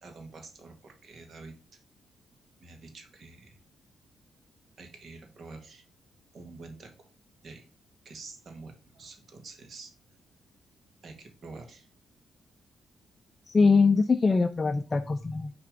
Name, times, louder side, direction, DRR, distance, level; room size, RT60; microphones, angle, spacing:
voice 1, 0.0-1.5 2.6-3.6 4.8-5.8 6.3-6.9 7.4-7.7 8.0-9.9 11.0-11.9, right 3 dB, 60° right, 5 dB, 1.7 m, -47 dB
voice 2, 13.5-15.5, left 4 dB, 30° left, 8 dB, 0.4 m, -23 dB
6.2 x 3.4 x 5.0 m, 0.35 s
cardioid pair, 85°, 0 cm